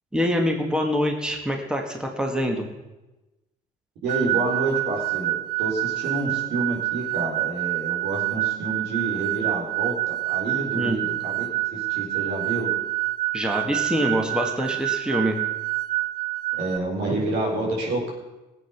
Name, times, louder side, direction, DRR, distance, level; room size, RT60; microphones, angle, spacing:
voice 1, 0.1-2.7 10.7-11.0 13.3-15.4, equal, 5° right, 2 dB, 1.9 m, -25 dB
voice 2, 4.0-5.3 5.6-12.7 16.6-18.1, right 2 dB, 85° right, -1 dB, 4.4 m, -28 dB
sound 1, 4.1-16.8, right 18 dB, 60° right, 0.6 m, -27 dB
17.5 x 8.1 x 6.0 m, 1.0 s
cardioid pair, 110°, 17 cm